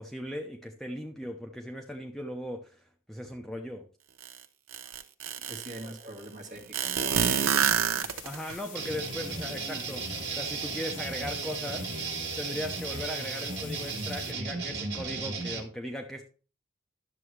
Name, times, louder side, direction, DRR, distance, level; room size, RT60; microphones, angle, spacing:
voice 1, 0.0-2.8 3.1-3.8 8.2-10.0 10.4-11.9 12.4-16.2, left 1 dB, ahead, 2 dB, 0.6 m, -38 dB
sound 1, 4.2-4.3 4.7-5.8 6.7-8.5, right 7 dB, 90° right, 0.8 m, -27 dB
voice 2, 5.4-8.2 9.3-9.7 10.9-11.6 13.5-13.7, right 1 dB, 35° right, 1 dB, 1.7 m, -46 dB
sound 2, 7.4-14.3, left 7 dB, 40° left, 1.1 m, -47 dB
sound 3, 8.8-15.6, right 4 dB, 55° right, 1.7 m, -35 dB
11.0 x 6.9 x 3.2 m, 0.37 s
head